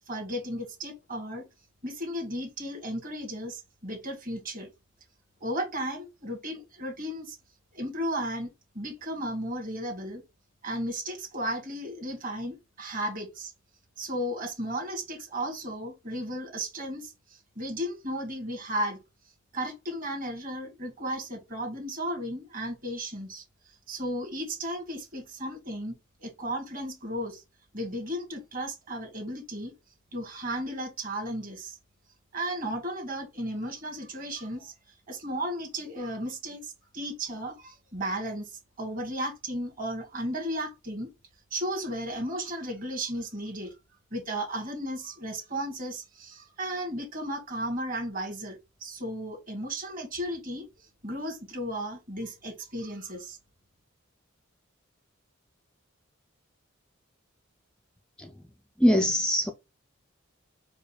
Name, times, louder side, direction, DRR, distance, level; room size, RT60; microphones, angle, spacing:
voice 1, 0.1-1.4 1.8-4.7 5.4-7.4 7.7-10.2 10.6-13.5 14.0-19.0 19.5-23.4 23.9-25.9 26.2-27.4 27.7-29.7 30.1-31.8 32.3-34.7 35.1-41.1 41.5-43.7 44.1-53.4, right 1 dB, 45° right, 2.0 m, -34 dB
voice 2, 58.8-59.5, equal, 5° left, 0.3 m, -23 dB
4.7 x 2.2 x 4.7 m
head